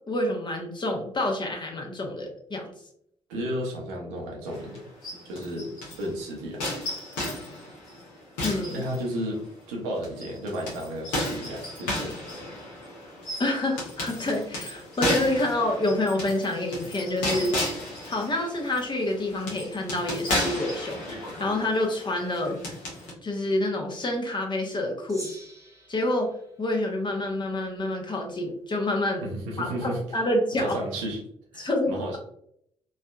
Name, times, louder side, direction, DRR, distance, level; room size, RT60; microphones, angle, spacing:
voice 1, 0.1-2.7 8.4-8.8 13.4-17.6 18.1-22.6 23.2-25.4 25.9-26.3 26.6-29.2 29.6-30.8 31.6-32.2, left 1 dB, 30° left, 2 dB, 1.0 m, -27 dB
voice 2, 3.3-4.8 5.2-6.6 8.7-9.4 9.7-12.1 29.2-30.3 30.6-31.2 31.5-32.2, equal, 75° right, -1 dB, 0.8 m, -33 dB
sound 1, 4.5-6.1 6.6-9.5 10.0-23.1, left 1 dB, 70° left, 1.0 m, -34 dB
Gong, 25.1-27.7, right 1 dB, 20° right, 0.9 m, -47 dB
3.2 x 2.7 x 2.4 m, 0.68 s
figure-of-eight pair, 40°, 15 cm